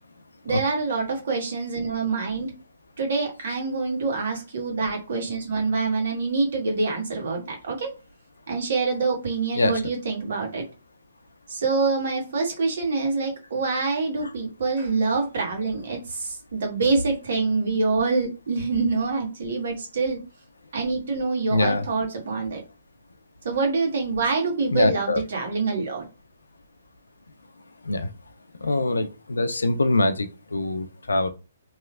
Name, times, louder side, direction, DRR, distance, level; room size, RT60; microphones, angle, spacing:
voice 1, 0.4-2.5 3.0-7.9 8.5-10.6 11.5-20.2 20.7-22.6 23.4-26.0, right 4 dB, 60° right, 1 dB, 1.4 m, -26 dB
voice 2, 21.5-21.9 24.7-25.2 27.8-28.1 28.6-31.3, left 2 dB, 85° left, 9 dB, 0.4 m, -23 dB
3.2 x 2.7 x 2.4 m, 0.32 s
hypercardioid pair, 135°, 0 cm